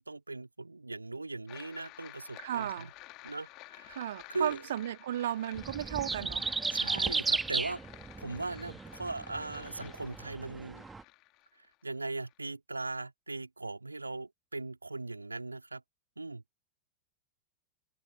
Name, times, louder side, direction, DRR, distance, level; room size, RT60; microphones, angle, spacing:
voice 1, 0.0-2.9 3.2-4.0 4.3-4.6 6.7-7.8 8.2-10.9 11.8-15.8 16.2-16.4, right 3 dB, 80° right, 3.8 m, -39 dB
sound 1, 1.5-12.4, left 21 dB, 40° left, 2.4 m, -52 dB
voice 2, 2.4-2.9 3.9-6.5, right 11 dB, 60° right, 2.5 m, -34 dB
sound 2, 5.6-11.0, right 4 dB, 10° right, 1.8 m, -35 dB
figure-of-eight pair, 90°, 0 cm